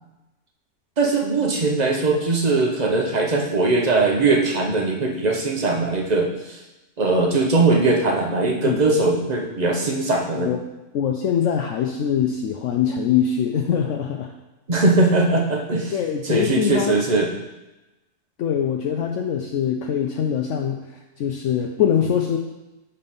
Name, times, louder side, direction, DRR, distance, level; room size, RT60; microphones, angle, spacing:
voice 1, 1.0-6.6 7.0-10.5 14.7-16.0 16.2-17.3, right 3 dB, 35° right, 1 dB, 0.7 m, -20 dB
voice 2, 10.9-14.3 15.9-17.0 18.4-20.8 21.2-22.4, left 8 dB, 70° left, 2 dB, 0.7 m, -23 dB
6.9 x 4.3 x 5.4 m, 1.0 s
omnidirectional pair, 1.8 m